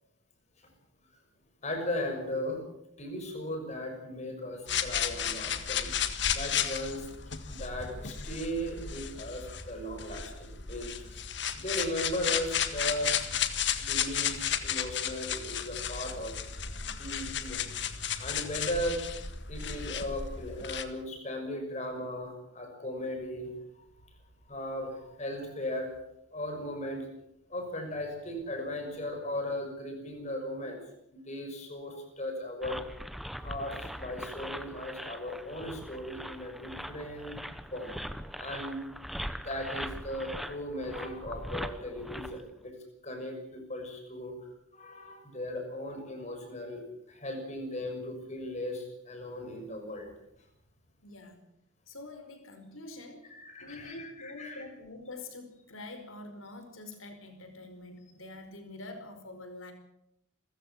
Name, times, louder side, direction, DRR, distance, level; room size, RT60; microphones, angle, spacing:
voice 1, 1.6-2.6 3.0-5.9 6.3-7.1 7.5-11.2 11.5-13.4 13.8-16.3 16.8-17.6 18.2-19.0 19.5-23.8 24.4-25.9 26.3-27.1 27.5-30.8 31.1-32.8 33.4-37.4 37.7-37.9 38.4-38.9 39.4-42.7 43.0-50.1 53.3-54.6, left 1 dB, 35° left, 4 dB, 6.1 m, -37 dB
sound 1, 4.7-20.8, left 8 dB, 60° left, 1.8 m, -33 dB
sound 2, 32.6-42.5, equal, ahead, 1.0 m, -41 dB
voice 2, 51.0-51.4 51.9-59.7, left 2 dB, 90° left, 7 dB, 5.1 m, -46 dB
28.0 x 15.0 x 7.5 m, 0.81 s
head